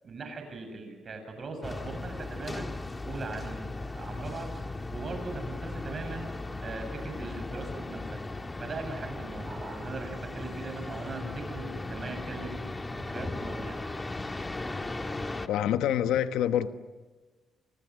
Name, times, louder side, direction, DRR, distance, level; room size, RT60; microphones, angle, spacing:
voice 1, 0.0-2.7 3.0-4.5 4.9-6.3 6.6-8.2 8.6-13.8, right 3 dB, 45° right, 7.8 m, -40 dB
sound 1, 1.6-15.5, left 2 dB, 20° left, 1.6 m, -37 dB
voice 2, 15.5-16.7, left 10 dB, 90° left, 1.1 m, -26 dB
29.0 x 26.5 x 6.4 m
cardioid pair, 90°, 0 cm